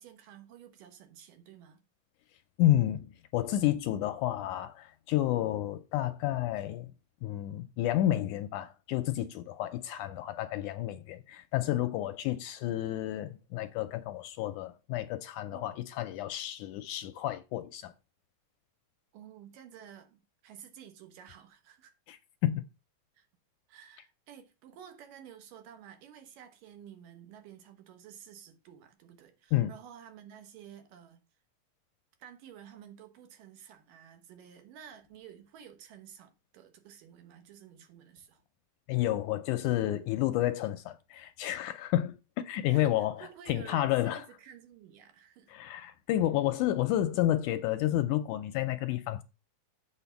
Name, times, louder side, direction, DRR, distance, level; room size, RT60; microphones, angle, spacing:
voice 1, 0.0-1.8 15.5-15.8 19.1-21.9 23.1-23.3 23.7-31.2 32.2-38.4 42.7-45.5, right 9 dB, 75° right, 2.9 m, -52 dB
voice 2, 2.6-6.9 7.2-17.9 22.1-22.2 22.4-22.6 29.5-29.7 38.9-42.2 42.4-44.3 45.5-49.2, left 13 dB, 80° left, 1.8 m, -30 dB
7.8 x 4.6 x 6.9 m
omnidirectional pair, 3.9 m